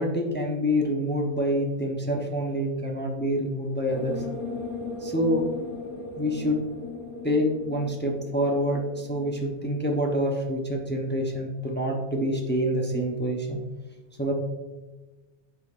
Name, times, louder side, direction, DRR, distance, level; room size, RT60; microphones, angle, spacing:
voice 1, 0.0-4.2 5.0-5.5 6.2-6.6 7.2-13.6 14.2-14.3, equal, 10° left, -1 dB, 0.7 m, -26 dB
sound 1, 3.9-10.2, left 3 dB, 55° left, 1.1 m, -37 dB
8.5 x 4.7 x 2.5 m, 1.2 s
omnidirectional pair, 1.1 m